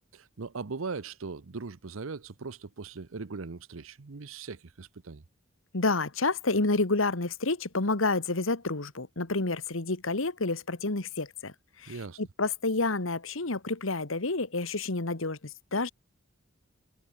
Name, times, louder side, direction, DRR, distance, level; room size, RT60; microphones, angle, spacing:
voice 1, 0.1-5.2 11.9-12.2, right 4 dB, 80° right, 0.8 m, -39 dB
voice 2, 5.7-15.4 15.7-15.9, left 3 dB, 75° left, 1.8 m, -29 dB
head